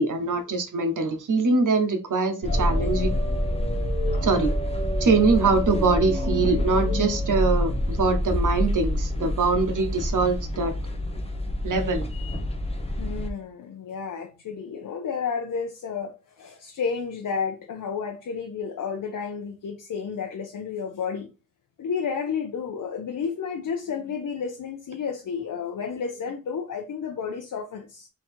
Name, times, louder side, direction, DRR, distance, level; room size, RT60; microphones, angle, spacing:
voice 1, 0.0-3.1 4.2-4.5 5.0-10.7 11.6-12.1, right 3 dB, 80° right, 1.0 m, -23 dB
sound 1, 2.4-13.3, equal, 20° left, 0.7 m, -26 dB
voice 2, 13.0-21.3 21.8-28.1, left 6 dB, 90° left, 0.7 m, -31 dB
3.8 x 2.9 x 4.4 m
wide cardioid pair, 120°, 31 cm